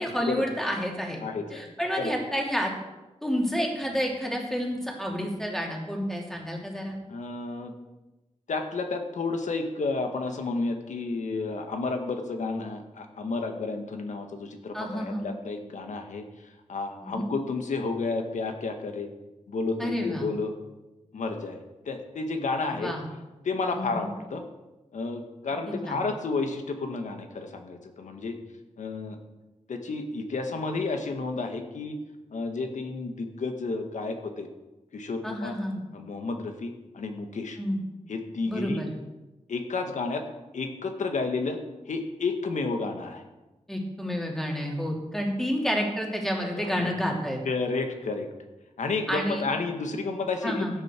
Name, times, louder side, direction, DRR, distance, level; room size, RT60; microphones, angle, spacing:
voice 1, 0.0-1.2 1.5-2.7 3.2-7.0 14.7-15.3 17.0-17.3 19.8-20.3 22.7-23.1 23.7-24.1 25.7-26.0 35.2-35.8 37.6-37.8 38.5-38.9 43.7-47.4 49.1-49.4 50.4-50.8, equal, 5° left, 0 dB, 2.9 m, -30 dB
voice 2, 1.2-2.1 7.1-7.7 8.5-16.2 16.7-19.1 19.5-20.5 21.1-22.9 23.4-24.4 24.9-28.4 28.8-29.2 29.7-32.0 32.3-34.5 34.9-35.5 35.9-37.6 38.1-38.9 39.5-40.2 40.5-41.6 41.8-43.2 46.5-46.9 47.4-48.3 48.8-50.6, left 3 dB, 75° left, 5 dB, 1.6 m, -31 dB
15.5 x 10.5 x 4.6 m, 1.1 s
wide cardioid pair, 115°, 12 cm